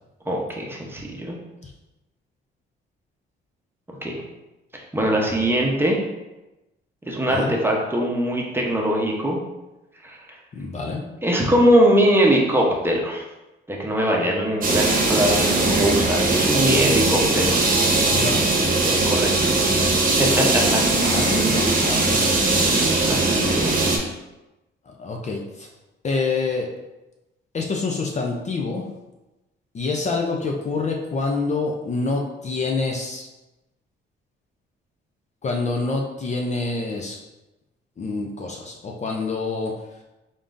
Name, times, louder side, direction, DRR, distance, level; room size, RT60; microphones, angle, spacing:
voice 1, 0.3-1.3 4.0-4.2 4.7-6.0 7.1-9.4 10.0-10.2 11.2-13.2 13.7-17.6 18.8-19.5 20.2-20.8 22.5-23.7, equal, 10° right, -1 dB, 0.8 m, -22 dB
voice 2, 10.5-11.0 18.1-18.5 21.0-22.7 24.9-25.7 26.0-26.7 27.5-28.8 29.7-33.3 35.4-37.2 38.0-39.7, left 3 dB, 35° left, 0 dB, 0.5 m, -27 dB
sound 1, 14.6-24.0, right 2 dB, 45° right, 0.9 m, -20 dB
3.9 x 3.5 x 2.5 m, 1.0 s
cardioid pair, 90°, 20 cm